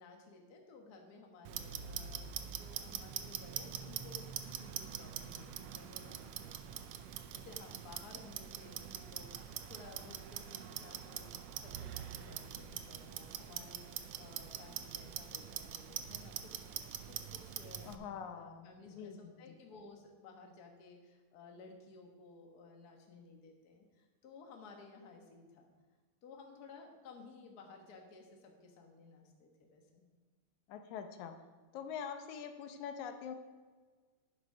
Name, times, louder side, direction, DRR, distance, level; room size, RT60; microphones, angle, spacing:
voice 1, 0.0-4.3 4.6-16.7 17.1-25.7 26.2-30.0, left 4 dB, 45° left, 2 dB, 1.3 m, -56 dB
Clock, 1.4-17.9, right 10 dB, 80° right, 1.4 m, -44 dB
voice 2, 17.8-19.2 19.5-19.6 30.7-31.4 31.7-33.4, left 7 dB, 80° left, 7 dB, 2.1 m, -44 dB
10.5 x 8.3 x 4.9 m, 1.4 s
omnidirectional pair, 3.4 m